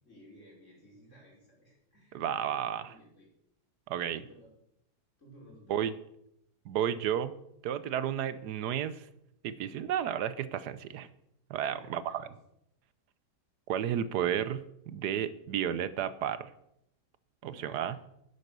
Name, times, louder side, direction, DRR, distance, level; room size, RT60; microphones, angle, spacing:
voice 1, 0.0-3.3 4.1-4.5 5.2-5.9 11.6-12.3 17.4-18.0, equal, 45° left, -3 dB, 5.3 m, -56 dB
voice 2, 2.1-2.9 3.9-4.2 5.7-5.9 6.7-7.3 7.6-9.1 9.4-11.1 11.5-12.2 13.7-16.5 17.4-18.0, right 9 dB, 80° right, 14 dB, 1.3 m, -32 dB
11.0 x 10.0 x 6.8 m, 0.78 s
omnidirectional pair, 1.7 m